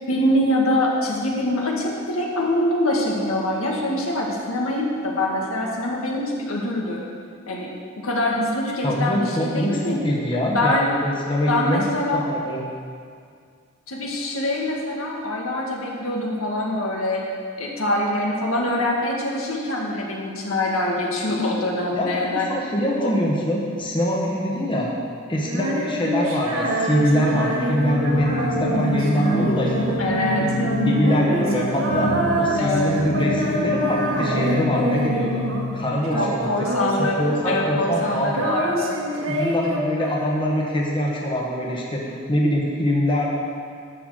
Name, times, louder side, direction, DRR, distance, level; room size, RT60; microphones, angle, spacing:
voice 1, 0.1-7.0 7.5-7.7 8.0-10.0 10.5-10.9 11.5-12.2 13.9-17.2 17.6-22.5 23.0-23.1 30.0-30.4 32.6-32.9 36.1-39.0, left 1 dB, 80° left, -2 dB, 1.9 m, -24 dB
voice 2, 8.8-11.8 12.1-12.6 21.9-24.9 25.3-30.0 30.3-30.5 30.8-32.1 32.4-35.4 35.7-36.7 37.0-38.5 39.1-43.3, equal, 25° left, -3 dB, 1.3 m, -24 dB
Female singing, 25.4-35.8 36.0-37.7 38.0-40.6, right 1 dB, 70° right, 1.7 m, -26 dB
Singing, 27.2-36.1, left 2 dB, 55° left, 0.9 m, -27 dB
11.5 x 7.1 x 6.4 m, 2.2 s
head